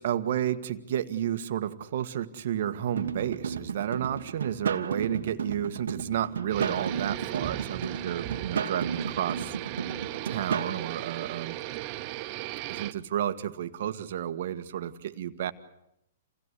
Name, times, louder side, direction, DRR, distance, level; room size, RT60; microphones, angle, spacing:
voice 1, 0.0-9.6 10.2-11.6 12.7-15.5, right 10 dB, 65° right, 10 dB, 1.6 m, -31 dB
sound 1, 3.0-10.8, right 6 dB, 85° right, 1.7 m, -33 dB
sound 2, 6.5-12.9, right 16 dB, 40° right, 1.0 m, -37 dB
27.5 x 17.0 x 9.9 m, 0.80 s
hypercardioid pair, 140°, 0 cm